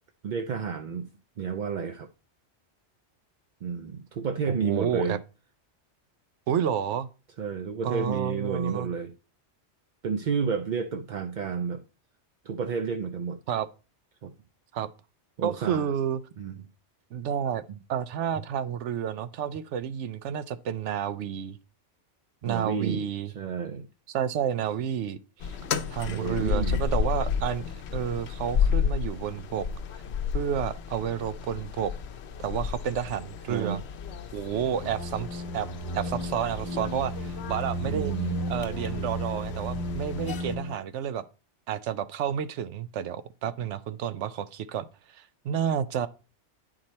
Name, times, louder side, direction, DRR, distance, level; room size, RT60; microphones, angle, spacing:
voice 1, 0.2-1.1 1.4-2.1 3.6-5.2 7.4-9.1 10.0-11.8 12.4-13.4 14.2-14.3 15.4-15.9 16.4-16.5 22.4-23.1 23.3-23.9 26.1-26.8 33.5-33.8 37.8-38.4, right 6 dB, 55° right, 0.5 m, -30 dB
voice 2, 4.5-5.2 6.5-7.1 7.8-8.9 13.5-13.7 14.7-14.9 15.4-16.2 17.1-17.6 17.9-21.6 22.4-23.3 24.1-25.6 25.9-29.7 30.3-31.9 32.4-33.8 34.3-35.7 35.9-38.1 38.5-41.2 41.7-44.9 45.1-46.1, right 9 dB, 75° right, 0.9 m, -30 dB
sound 1, 25.4-40.5, left 7 dB, 65° left, 0.9 m, -32 dB
sound 2, 34.8-40.8, right 1 dB, 25° left, 0.5 m, -34 dB
9.2 x 4.9 x 4.2 m
omnidirectional pair, 1.2 m